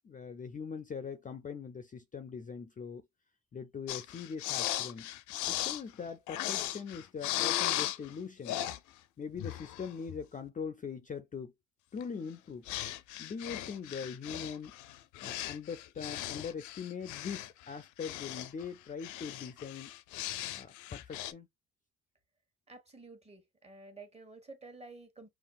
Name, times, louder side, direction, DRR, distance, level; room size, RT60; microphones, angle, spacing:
voice 1, 0.0-3.0 3.5-5.1 5.5-8.6 9.2-11.5 11.9-12.7 13.2-14.8 15.2-19.9 20.5-21.5, left 6 dB, 30° left, 0.4 m, -41 dB
sound 1, 3.9-8.1 8.4-8.8 9.3-10.2 12.0-12.1 12.7-18.7 19.0-21.3, left 14 dB, 90° left, 0.5 m, -37 dB
voice 2, 22.7-25.3, right 3 dB, 20° right, 1.3 m, -51 dB
5.6 x 2.4 x 2.3 m
cardioid pair, 90°, 29 cm